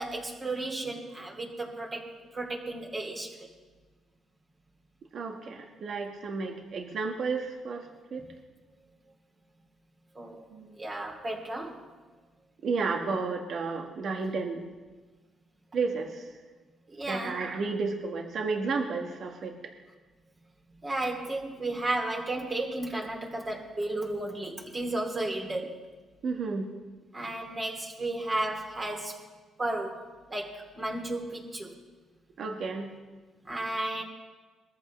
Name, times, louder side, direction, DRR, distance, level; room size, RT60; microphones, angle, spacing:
voice 1, 0.0-3.5 8.2-8.3 10.1-10.4 10.7-11.8 16.9-17.4 20.8-25.8 27.1-29.2 29.6-30.0 30.3-31.7 33.4-34.0, right 2 dB, 30° right, 0 dB, 2.8 m, -33 dB
voice 2, 5.1-8.2 10.5-10.8 12.6-14.6 15.7-16.3 17.1-19.7 26.2-26.7 32.4-32.9, right 4 dB, 60° right, 3 dB, 1.5 m, -32 dB
21.0 x 14.0 x 3.2 m, 1.3 s
cardioid pair, 90°, 0 cm